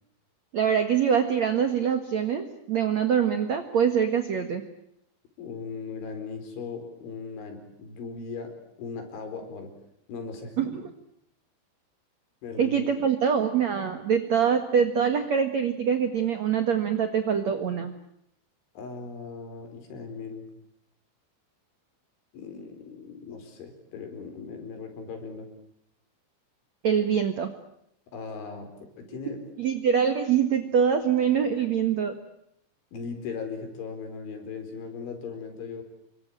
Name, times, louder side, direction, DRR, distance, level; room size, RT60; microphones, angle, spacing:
voice 1, 0.5-4.6 10.6-10.9 12.6-17.9 26.8-27.5 29.6-32.1, right 7 dB, 60° right, 8 dB, 1.8 m, -24 dB
voice 2, 5.4-8.5 8.8-9.7 10.1-10.5 12.4-12.8 18.7-20.5 22.3-25.5 28.1-29.4 32.9-35.8, left 5 dB, 65° left, 6 dB, 6.8 m, -38 dB
28.0 x 23.5 x 8.9 m, 0.75 s
omnidirectional pair, 5.8 m